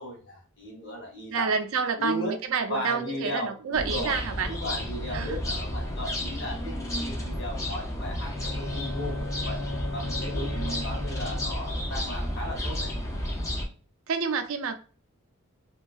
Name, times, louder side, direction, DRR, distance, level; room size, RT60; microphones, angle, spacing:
voice 1, 0.0-1.5 2.0-2.4 2.7-4.2 4.5-9.6 9.9-12.9, left 1 dB, 50° left, 0.9 m, -36 dB
voice 2, 1.3-4.5 5.1-5.4 10.6-11.0 14.1-14.7, right 5 dB, 70° right, 0.4 m, -29 dB
sound 1, 3.7-13.7, left 1 dB, 15° left, 0.4 m, -32 dB
Bowed string instrument, 8.2-11.9, left 2 dB, 90° left, 0.7 m, -37 dB
2.6 x 2.2 x 2.3 m
head